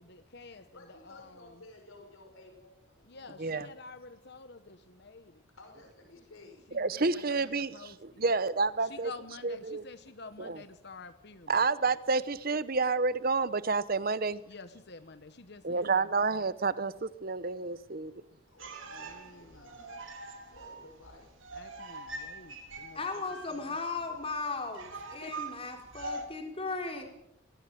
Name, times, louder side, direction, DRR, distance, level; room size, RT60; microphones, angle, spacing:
voice 1, 0.0-1.6 3.0-5.4 6.7-8.2 8.8-11.7 14.5-16.1 18.8-19.7 21.5-23.0 23.7-23.8 25.2-25.5, left 3 dB, 55° left, 11 dB, 1.1 m, -50 dB
voice 2, 0.5-3.5 5.6-6.7 14.4-14.5 18.5-20.0 20.4-21.3, left 2 dB, 80° left, 3 dB, 5.4 m, -55 dB
voice 3, 6.7-7.8 8.2-9.1 9.4-9.8 10.4-10.6 11.5-14.4 15.6-18.1, right 4 dB, 45° right, 16 dB, 0.9 m, -29 dB
sound 1, 18.6-26.2, right 2 dB, 70° right, 3.6 m, -44 dB
voice 4, 22.9-27.0, left 3 dB, 25° left, 4 dB, 4.2 m, -36 dB
23.5 x 17.0 x 7.7 m, 0.79 s
head